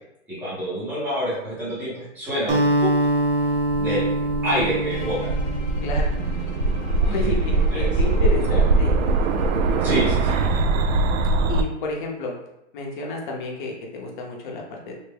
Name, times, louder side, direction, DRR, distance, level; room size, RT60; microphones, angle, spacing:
voice 1, 0.3-2.9 3.8-4.1 4.4-5.3 7.0-7.9 8.4-8.7 9.8-10.4, equal, 5° right, -9 dB, 0.6 m, -27 dB
Acoustic guitar, 2.5-7.0, right 1 dB, 45° right, 0.6 m, -24 dB
sound 1, 3.4-11.6, right 3 dB, 85° right, 0.5 m, -22 dB
Bowed string instrument, 4.9-10.9, left 6 dB, 80° left, 0.7 m, -43 dB
voice 2, 7.0-8.9 11.5-12.3 12.7-14.9, left 2 dB, 40° left, 0 dB, 0.6 m, -31 dB
3.3 x 2.0 x 3.3 m, 0.84 s
hypercardioid pair, 160°, 39 cm